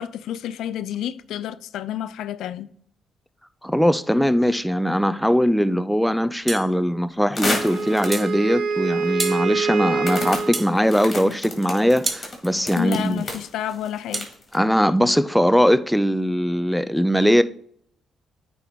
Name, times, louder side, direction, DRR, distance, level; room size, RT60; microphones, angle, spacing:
voice 1, 0.0-2.7 12.8-14.3, left 10 dB, 80° left, 0.3 m, -30 dB
voice 2, 3.6-13.2 14.5-17.4, equal, ahead, 0.4 m, -20 dB
sound 1, 6.5-6.7 8.1-8.3 9.2-9.4 10.5-10.8 12.1-12.3 14.1-14.3, right 2 dB, 20° right, 0.8 m, -28 dB
sound 2, 7.4-8.3 9.0-9.1 10.0-14.6, left 2 dB, 35° left, 2.1 m, -30 dB
Wind instrument woodwind instrument, 7.4-10.7, right 4 dB, 75° right, 1.0 m, -25 dB
9.0 x 3.5 x 3.8 m
cardioid pair, 90°, 0 cm